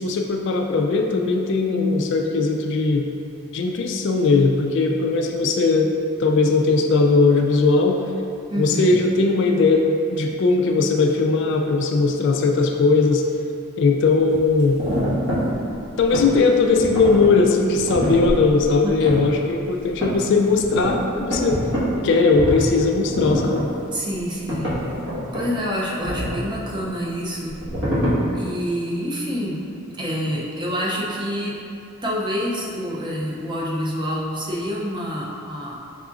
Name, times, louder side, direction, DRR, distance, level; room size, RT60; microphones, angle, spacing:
voice 1, 0.0-3.1 3.5-5.9 6.2-8.0 8.6-13.2 13.8-14.8 16.0-21.6 22.0-23.7, left 3 dB, 55° left, 3 dB, 0.3 m, -19 dB
voice 2, 8.5-9.0 18.8-19.1 23.9-24.8 25.3-27.6 28.3-29.7 30.0-31.6 32.0-35.8, equal, 20° right, -4 dB, 0.5 m, -27 dB
sound 1, 14.3-16.3 16.7-17.4 17.7-19.3 19.9-21.9 22.3-22.7 23.0-23.6 24.2-24.3 24.5-25.4 26.0-26.8 27.5-28.1, equal, 55° right, 1.4 m, -26 dB
5.8 x 3.5 x 2.4 m, 2.6 s
head